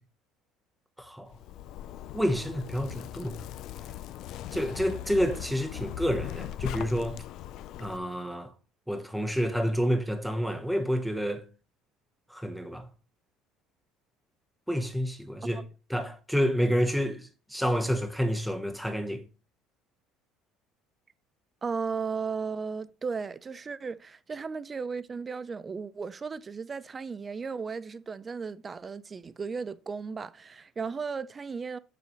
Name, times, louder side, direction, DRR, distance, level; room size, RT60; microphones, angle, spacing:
voice 1, 1.0-1.3 2.1-3.4 4.5-7.2 7.8-8.5 8.9-11.4 12.3-12.9 14.7-15.6 15.9-19.2, equal, ahead, 0.9 m, -29 dB
Zipper (clothing), 1.3-8.0, left 12 dB, 60° left, 0.4 m, -39 dB
voice 2, 21.6-31.8, right 5 dB, 25° right, 0.4 m, -35 dB
6.8 x 6.5 x 3.0 m
cardioid pair, 140°, 0 cm